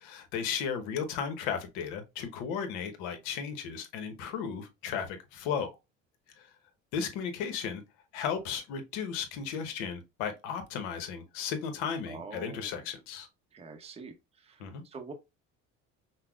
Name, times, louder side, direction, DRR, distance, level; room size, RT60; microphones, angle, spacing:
voice 1, 0.0-5.7 6.4-6.5 6.9-7.8 8.1-13.3 14.6-14.8, left 7 dB, 85° left, 0.9 m, -35 dB
voice 2, 12.1-12.8 13.5-14.1 14.4-15.1, right 4 dB, 20° right, 0.7 m, -45 dB
5.5 x 2.0 x 2.3 m
cardioid pair, 125°, 30 cm